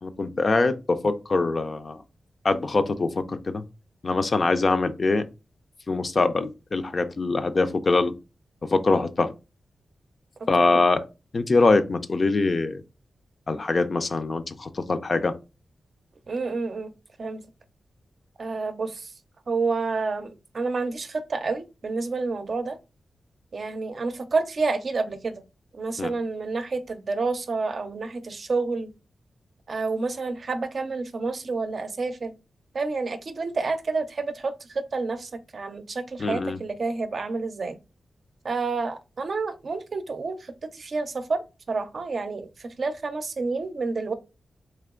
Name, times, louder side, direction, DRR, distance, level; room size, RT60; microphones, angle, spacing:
voice 1, 0.0-2.0 2.4-3.6 4.0-5.3 5.9-8.1 8.7-9.3 10.5-11.0 11.3-12.8 13.5-15.3 26.0-26.1 36.2-36.6, left 3 dB, 45° left, 0.4 m, -23 dB
voice 2, 16.3-16.9 17.2-17.4 18.4-19.1 19.5-22.8 23.5-25.4 25.7-28.9 29.7-32.3 32.7-37.8 38.4-41.4 41.7-44.1, right 3 dB, 55° right, 0.5 m, -29 dB
3.3 x 2.9 x 3.7 m
cardioid pair, 80°, 0 cm